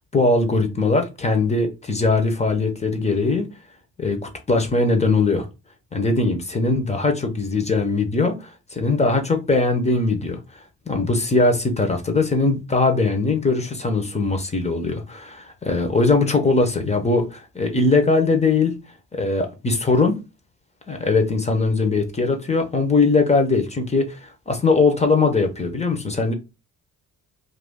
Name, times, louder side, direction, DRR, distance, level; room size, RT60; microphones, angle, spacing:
voice 1, 0.1-3.4 4.0-5.5 5.9-10.4 10.9-18.8 19.1-20.2 20.9-26.3, left 3 dB, 20° left, 0.8 m, -20 dB
2.6 x 2.4 x 3.5 m
cardioid pair, 90°, 30 cm